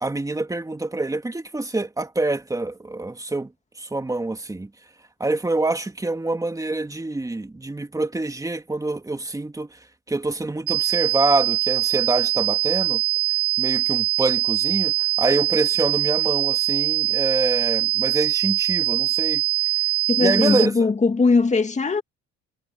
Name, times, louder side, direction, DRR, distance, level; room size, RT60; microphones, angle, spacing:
voice 1, 0.0-3.5 3.8-4.7 5.2-9.8 10.1-13.0 13.6-19.4 20.2-20.7, right 2 dB, 10° right, 2.6 m, -26 dB
sound 1, 10.7-20.7, right 16 dB, 90° right, 1.9 m, -22 dB
voice 2, 20.1-22.0, left 4 dB, 25° left, 2.1 m, -20 dB
cardioid pair, 105°, 29 cm